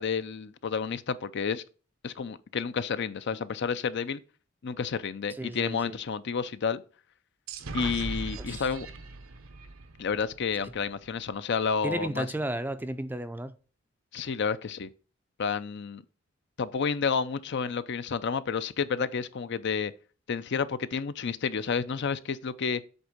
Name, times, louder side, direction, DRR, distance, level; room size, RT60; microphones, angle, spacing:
voice 1, 0.0-1.6 2.0-4.2 4.6-6.8 7.7-8.9 10.0-12.3 14.1-14.9 15.4-16.0 16.6-19.9 20.3-22.8, left 6 dB, 60° left, 0.5 m, -30 dB
voice 2, 5.4-6.0 8.4-8.7 11.8-13.6, right 1 dB, 10° right, 0.4 m, -33 dB
sound 1, 7.5-11.1, right 3 dB, 85° right, 0.8 m, -40 dB
8.0 x 3.5 x 6.6 m
head